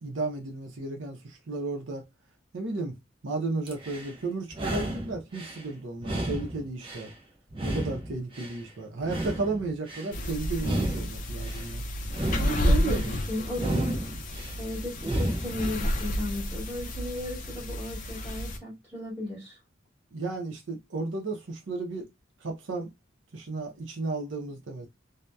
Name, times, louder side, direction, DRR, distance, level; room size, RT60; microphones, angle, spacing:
voice 1, 0.0-2.1 2.5-3.0 3.2-7.1 7.6-11.8 12.4-13.2 20.1-22.1 22.4-22.9 23.3-24.9, right 3 dB, 70° right, 0.6 m, -33 dB
sound 1, 3.7-4.1 4.5-5.6 6.0-7.1 7.5-8.6 9.0-10.1 10.6-11.6 12.1-13.1 13.5-14.5 15.0-15.6, right 1 dB, 25° right, 0.5 m, -32 dB
sound 2, 10.1-18.6, left 1 dB, 40° left, 0.4 m, -31 dB
voice 2, 12.4-14.0 14.6-19.6, equal, 10° right, 1.2 m, -35 dB
2.7 x 2.1 x 2.2 m
head